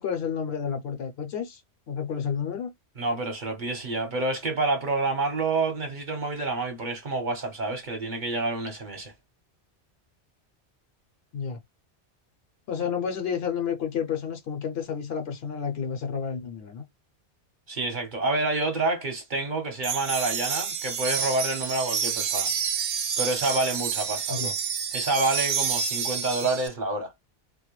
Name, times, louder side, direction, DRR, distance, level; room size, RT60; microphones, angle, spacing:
voice 1, 0.0-1.6 1.9-2.7 11.3-11.6 12.7-16.8 24.3-24.5, left 7 dB, 65° left, 0.7 m, -30 dB
voice 2, 3.0-9.1 17.7-22.5 23.2-24.5 24.9-27.1, right 2 dB, 45° right, 0.9 m, -28 dB
sound 1, 19.8-26.7, right 7 dB, 80° right, 0.9 m, -29 dB
2.2 x 2.1 x 2.9 m
omnidirectional pair, 1.2 m